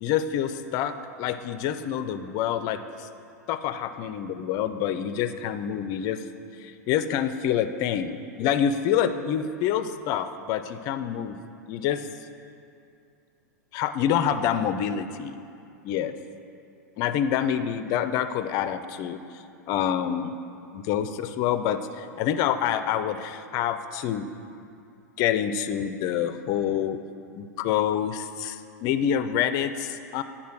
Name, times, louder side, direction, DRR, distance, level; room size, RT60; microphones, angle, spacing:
voice 1, 0.0-3.1 3.5-6.2 6.6-11.4 11.7-12.1 13.7-15.4 15.8-16.1 17.0-19.2 19.7-20.3 20.7-24.3 25.2-27.0 27.4-30.2, left 9 dB, 40° left, 11 dB, 0.4 m, -27 dB
9.3 x 3.8 x 6.0 m, 2.5 s
figure-of-eight pair, 95°, 9 cm